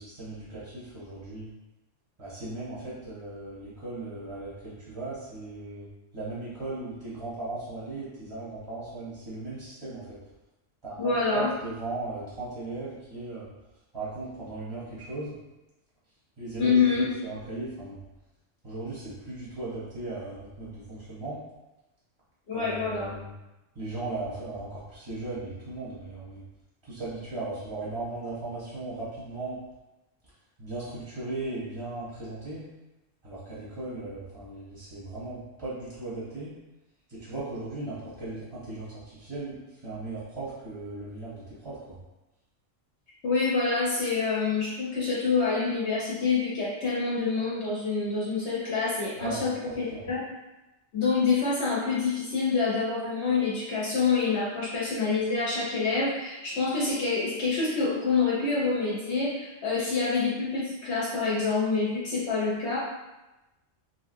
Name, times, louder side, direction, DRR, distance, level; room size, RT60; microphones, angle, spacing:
voice 1, 0.0-1.5 2.2-5.9 6.1-10.2 10.8-13.5 13.9-15.3 16.4-18.0 18.6-21.4 22.5-23.3 23.7-26.4 26.8-29.6 30.6-32.7 33.2-36.6 37.1-39.6 39.8-42.0 49.2-50.0, right 2 dB, 25° right, -9 dB, 0.7 m, -37 dB
voice 2, 11.0-11.5 16.6-17.0 22.5-23.1 43.2-50.2 50.9-62.8, left 4 dB, 65° left, -7 dB, 0.9 m, -26 dB
2.8 x 2.7 x 2.5 m, 1.0 s
omnidirectional pair, 1.3 m